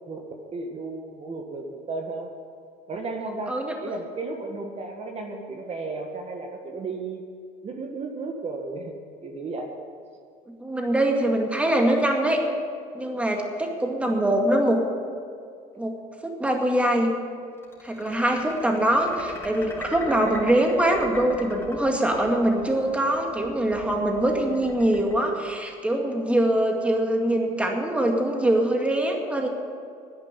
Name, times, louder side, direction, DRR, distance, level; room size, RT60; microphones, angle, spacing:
voice 1, 0.5-2.3 2.9-7.2 7.6-9.0 9.2-9.7, right 3 dB, 40° right, 2 dB, 1.6 m, -34 dB
voice 2, 10.5-12.4 12.9-14.8 15.8-15.9 16.2-17.1 17.8-29.5, right 1 dB, 5° right, 2 dB, 2.1 m, -23 dB
sound 1, 17.6-26.2, left 2 dB, 15° left, 4.1 m, -42 dB
10.5 x 9.9 x 9.8 m, 2.2 s
cardioid pair, 105°, 17 cm